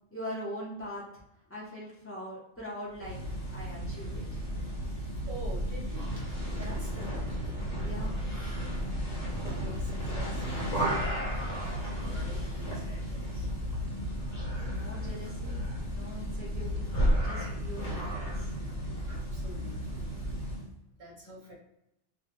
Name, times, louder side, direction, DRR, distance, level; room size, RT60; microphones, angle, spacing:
voice 1, 0.1-1.0 1.5-3.2 3.5-4.4 7.7-8.2 14.7-15.6 15.9-16.9 17.2-18.5, equal, 15° left, -7 dB, 0.6 m, -42 dB
sound 1, 2.9-20.7, equal, 45° left, 0.9 m, -33 dB
voice 2, 5.2-7.5 9.6-11.4 12.1-13.5 19.1-20.5 21.0-21.5, equal, 45° right, -3 dB, 0.8 m, -47 dB
2.2 x 2.2 x 2.9 m, 0.80 s
omnidirectional pair, 1.2 m